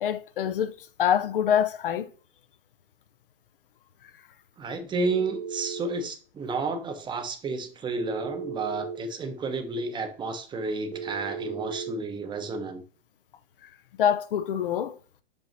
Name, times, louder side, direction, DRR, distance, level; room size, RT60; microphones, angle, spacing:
voice 1, 0.0-2.1 4.0-4.1 13.6-13.7 14.0-15.0, left 9 dB, 65° left, 0.7 m, -25 dB
voice 2, 4.6-12.8, right 3 dB, 15° right, 0.8 m, -31 dB
Telephone, 5.0-6.0 8.0-9.0 10.9-11.9, right 6 dB, 80° right, 1.1 m, -36 dB
6.4 x 5.3 x 3.0 m
figure-of-eight pair, 110°, 30 cm